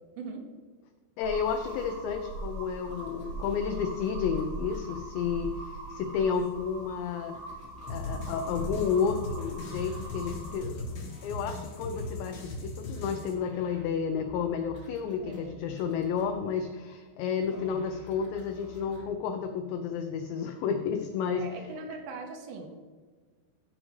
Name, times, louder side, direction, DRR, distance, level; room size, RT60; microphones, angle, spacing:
voice 1, 1.2-7.4 7.9-21.5, left 6 dB, 80° left, 6 dB, 2.6 m, -31 dB
sound 1, 1.2-10.6, right 2 dB, 50° right, 3.3 m, -41 dB
sound 2, 1.4-17.0 17.4-19.0, left 2 dB, 5° right, 0.5 m, -51 dB
sound 3, 7.9-13.3, left 1 dB, 55° left, 2.4 m, -38 dB
voice 2, 15.2-16.1 17.5-18.0 21.3-22.7, right 3 dB, 75° right, 3 dB, 3.1 m, -41 dB
15.0 x 6.3 x 3.3 m, 1.4 s
omnidirectional pair, 5.6 m